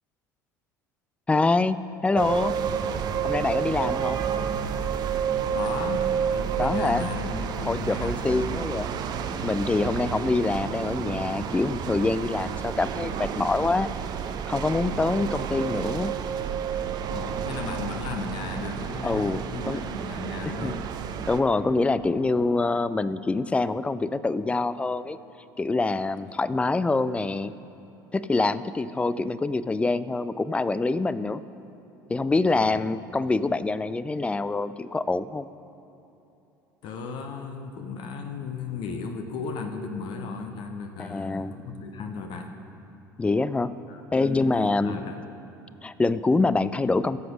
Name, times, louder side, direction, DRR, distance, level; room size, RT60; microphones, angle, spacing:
voice 1, 1.3-2.6 3.2-4.3 6.6-7.1 7.7-8.9 9.4-13.9 14.5-16.1 19.0-19.8 20.4-20.8 21.3-25.2 25.6-27.5 28.1-31.4 32.1-35.5 41.0-41.5 43.2-43.7 44.1-45.0 45.8-47.2, left 3 dB, 10° left, 15 dB, 0.4 m, -25 dB
sound 1, 2.2-21.4, right 7 dB, 40° right, 0.7 m, -30 dB
voice 2, 5.5-8.7 17.1-20.9 32.5-32.8 36.8-42.5 43.9-45.2, left 4 dB, 50° left, 5 dB, 1.0 m, -36 dB
15.5 x 7.7 x 5.1 m, 3.0 s
figure-of-eight pair, 65°, 11 cm